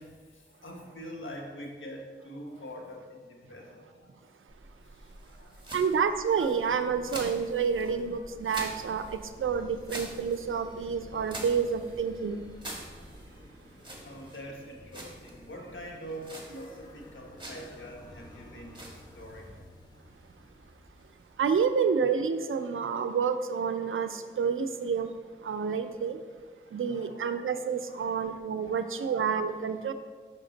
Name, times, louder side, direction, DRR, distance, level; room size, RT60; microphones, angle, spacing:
voice 1, 0.0-4.1 4.8-5.7 14.0-19.5 26.6-27.2 27.9-28.2 28.6-29.1, equal, 75° left, 0 dB, 1.2 m, -45 dB
sound 1, 4.5-21.8, right 1 dB, 25° right, 1.4 m, -47 dB
voice 2, 5.2-12.5 21.4-26.2 26.7-29.9, right 6 dB, 85° right, 9 dB, 0.4 m, -29 dB
sound 2, 9.3-21.6, left 1 dB, 20° left, 1.3 m, -53 dB
5.9 x 5.8 x 3.9 m, 1.5 s
wide cardioid pair, 50°, 20 cm